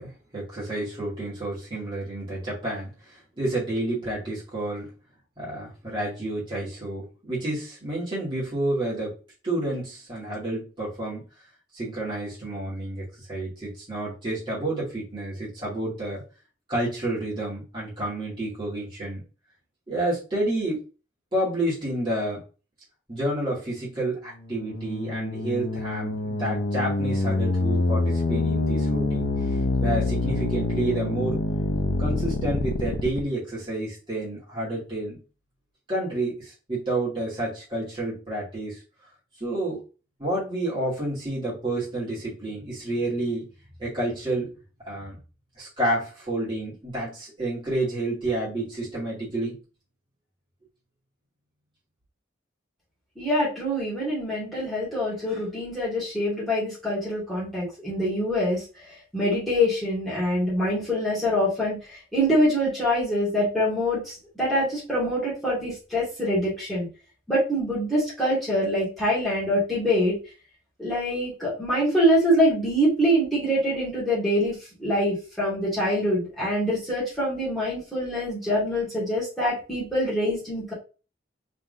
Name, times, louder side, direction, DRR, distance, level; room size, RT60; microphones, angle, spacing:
voice 1, 0.0-4.9 5.4-9.1 9.4-11.2 11.7-16.2 16.7-19.2 19.9-20.8 21.3-22.4 23.1-29.3 29.8-31.4 32.0-35.2 35.9-38.8 39.4-39.8 40.2-43.5 43.8-44.5 44.9-45.2 45.6-49.6, right 1 dB, 25° right, -9 dB, 2.5 m, -29 dB
sound 1, 24.4-33.2, left 2 dB, 75° left, 0.6 m, -26 dB
voice 2, 53.2-58.6 59.1-66.9 67.3-70.2 70.8-80.7, equal, ahead, -10 dB, 2.5 m, -25 dB
4.5 x 3.8 x 2.7 m, 0.34 s
head